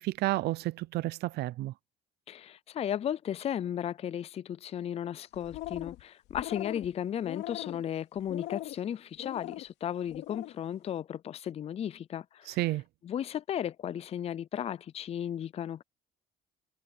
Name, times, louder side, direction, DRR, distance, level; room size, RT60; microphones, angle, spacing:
voice 1, 0.0-1.7 12.5-12.8, right 18 dB, 75° right, 0.5 m, -31 dB
voice 2, 2.3-12.6 13.0-15.8, left 9 dB, 35° left, 0.5 m, -35 dB
sound 1, 5.3-6.0 6.3-6.9 7.2-7.8 8.3-8.8 9.2-9.6 10.1-10.5, left 16 dB, 85° left, 3.0 m, -40 dB
cardioid pair, 110°, 17 cm